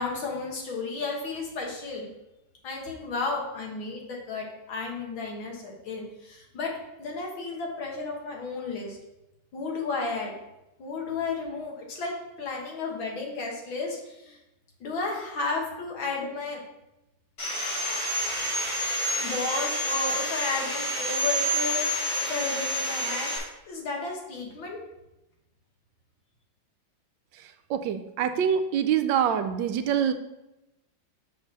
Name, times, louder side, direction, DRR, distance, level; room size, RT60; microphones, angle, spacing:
voice 1, 0.0-2.1 2.6-6.7 7.0-9.0 9.5-10.3 10.8-14.4 14.8-16.6 19.2-21.8 22.3-23.3 23.7-24.8, left 3 dB, 85° left, -1 dB, 2.3 m, -33 dB
Sawing, 17.4-23.4, equal, 45° left, 3.7 m, -28 dB
voice 2, 27.7-30.1, right 8 dB, 75° right, 9 dB, 1.2 m, -25 dB
6.8 x 4.2 x 6.1 m, 0.93 s
omnidirectional pair, 2.1 m